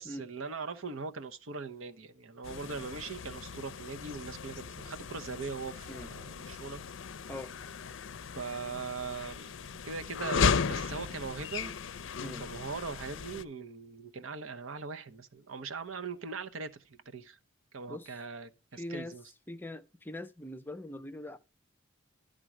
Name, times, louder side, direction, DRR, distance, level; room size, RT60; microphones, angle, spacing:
voice 1, 0.0-6.8 8.4-11.7 12.2-17.4 17.7-19.2, right 4 dB, 85° right, 0.8 m, -41 dB
sound 1, 2.4-13.4, left 5 dB, 65° left, 0.5 m, -36 dB
voice 2, 17.9-18.2 18.7-19.1 19.5-21.4, left 1 dB, 10° left, 0.5 m, -42 dB
11.0 x 3.8 x 6.1 m
head